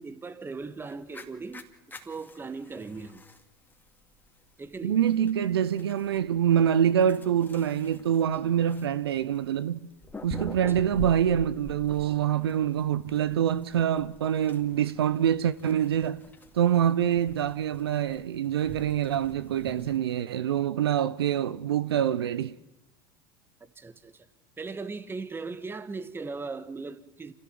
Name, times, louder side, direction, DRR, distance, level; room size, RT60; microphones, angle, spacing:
voice 1, 0.0-3.2 4.6-5.0 10.7-10.8 23.7-24.3 24.6-27.3, right 4 dB, 15° right, 1.5 m, -38 dB
sound 1, 0.6-20.0, left 1 dB, 15° left, 2.4 m, -46 dB
voice 2, 4.8-9.8 10.2-16.2 16.5-22.6, right 9 dB, 85° right, 0.7 m, -25 dB
27.5 x 15.5 x 7.7 m
hypercardioid pair, 90°, 13 cm